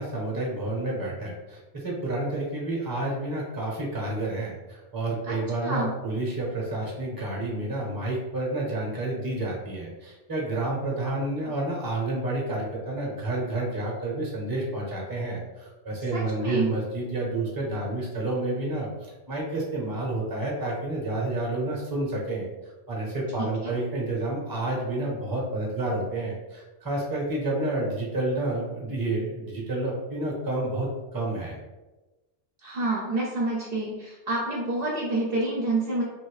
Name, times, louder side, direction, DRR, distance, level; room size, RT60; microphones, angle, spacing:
voice 1, 0.0-22.5 22.9-31.5, right 2 dB, 20° right, -3 dB, 0.8 m, -30 dB
voice 2, 5.2-5.9 16.1-16.7 23.4-23.7 32.6-36.0, right 2 dB, 60° right, -3 dB, 0.8 m, -28 dB
3.0 x 2.6 x 3.2 m, 1.1 s
omnidirectional pair, 1.2 m